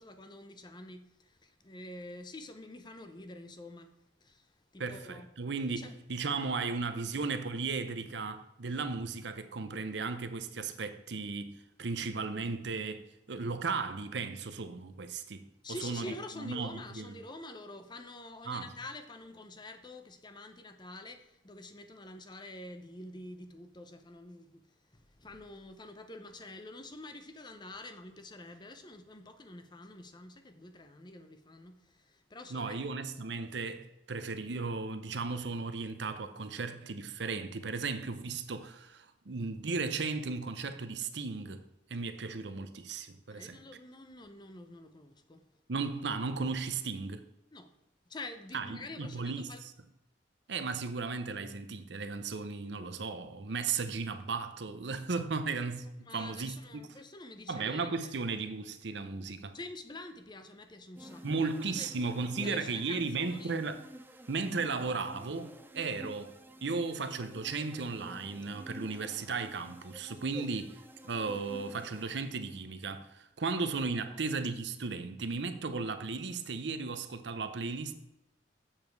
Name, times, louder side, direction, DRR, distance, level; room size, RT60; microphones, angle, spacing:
voice 1, 0.0-3.9 4.2-5.3 5.8-6.0 15.6-24.6 24.9-32.8 43.3-45.4 47.5-47.7 48.1-49.6 56.1-58.1 59.5-61.5 61.8-61.9 62.3-63.5 70.3-70.5 74.1-74.2, left 2 dB, 25° left, 0.7 m, -47 dB
voice 2, 4.8-15.5 15.8-17.1 18.5-18.7 32.5-41.6 41.9-43.6 45.7-47.3 48.5-49.7 50.5-56.9 57.5-59.5 61.2-63.8 64.3-66.3 66.6-70.7 71.0-77.9, right 4 dB, 65° right, 0.7 m, -35 dB
sound 1, 60.9-72.7, equal, 10° right, 0.6 m, -51 dB
7.3 x 7.0 x 4.6 m
head